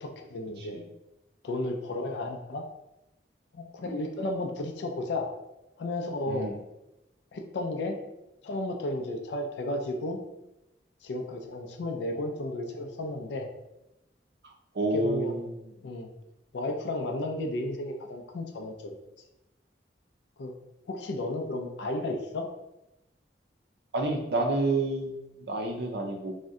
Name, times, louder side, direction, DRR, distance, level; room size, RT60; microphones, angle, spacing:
voice 1, 0.0-0.8 1.4-2.7 3.5-5.3 5.8-6.5 7.3-8.0 8.4-10.2 11.0-13.5 14.9-15.5 15.8-16.1 16.5-19.0 20.4-20.5 20.9-22.5, left 1 dB, 75° left, 3 dB, 0.4 m, -33 dB
voice 2, 14.7-15.7 23.9-26.3, right 2 dB, 65° right, 2 dB, 0.5 m, -29 dB
2.6 x 2.1 x 3.5 m, 0.92 s
head